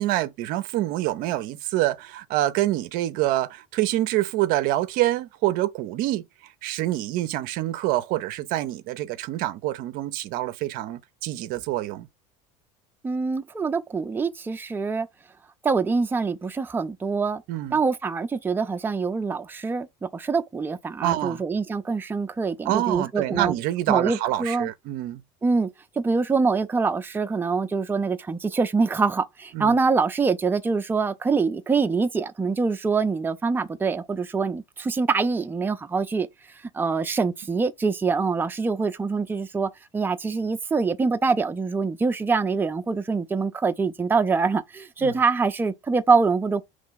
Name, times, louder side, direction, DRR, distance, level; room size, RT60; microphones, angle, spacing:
voice 1, 0.0-6.2 6.6-12.1 17.5-17.8 21.0-21.4 22.7-25.2 29.5-29.8 45.0-45.1, right 15 dB, 65° right, 0.5 m, -26 dB
voice 2, 13.0-15.1 15.6-17.4 17.7-23.5 23.9-24.7 25.4-25.7 26.0-46.6, right 4 dB, 15° right, 0.5 m, -24 dB
4.3 x 3.1 x 3.9 m
supercardioid pair, 90°, 16 cm